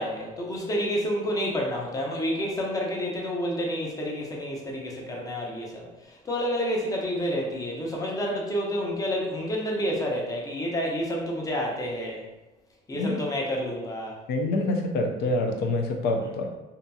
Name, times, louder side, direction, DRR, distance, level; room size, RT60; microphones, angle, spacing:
voice 1, 0.0-12.2 12.9-14.2 16.2-16.3, equal, 20° left, -1 dB, 0.6 m, -29 dB
voice 2, 14.3-16.5, left 2 dB, 70° left, 3 dB, 0.5 m, -26 dB
2.7 x 2.6 x 2.3 m, 1.1 s
cardioid pair, 110°, 17 cm